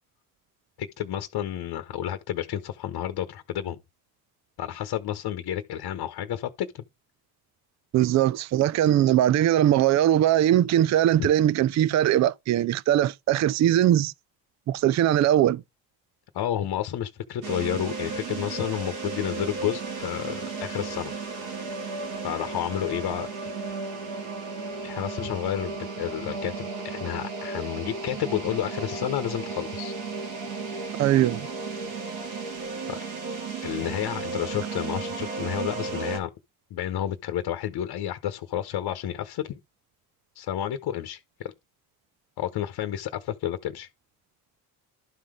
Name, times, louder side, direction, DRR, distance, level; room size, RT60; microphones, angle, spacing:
voice 1, 0.8-3.8 4.6-6.8 11.2-11.3 16.3-21.1 22.2-23.3 24.8-29.9 32.9-33.0 33.6-36.3 36.7-39.6 40.3-41.5 42.4-43.9, left 11 dB, 60° left, 1.0 m, -30 dB
voice 2, 7.9-14.1 14.7-15.6 31.0-31.5, right 12 dB, 40° right, 0.5 m, -21 dB
sound 1, 17.4-36.2, right 4 dB, 85° right, 2.5 m, -34 dB
11.5 x 3.9 x 4.9 m
supercardioid pair, 75°, 42 cm